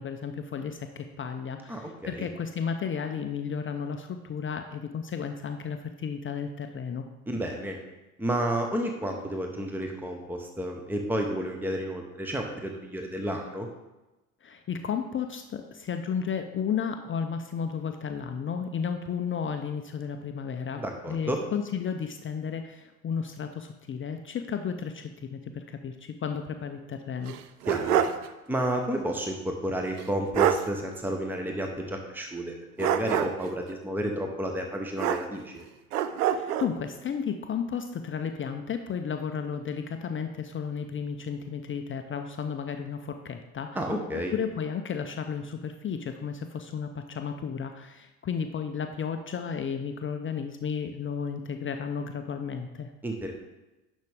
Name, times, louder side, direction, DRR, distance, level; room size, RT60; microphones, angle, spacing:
voice 1, 0.0-7.1 14.4-27.4 36.3-43.8 44.1-52.9, left 6 dB, 30° left, 6 dB, 0.7 m, -33 dB
voice 2, 1.7-2.3 7.3-7.8 8.2-13.7 20.8-21.4 27.7-28.0 28.5-35.6 43.7-44.3 53.0-53.3, right 1 dB, 5° right, 3 dB, 1.1 m, -31 dB
sound 1, 27.2-28.3 28.6-28.7 30.0-30.1 30.3-30.7 32.8-33.5 35.0-35.6 35.9-36.7, right 10 dB, 80° right, 0.6 m, -26 dB
10.5 x 6.2 x 3.6 m, 1.1 s
figure-of-eight pair, 60°, 45 cm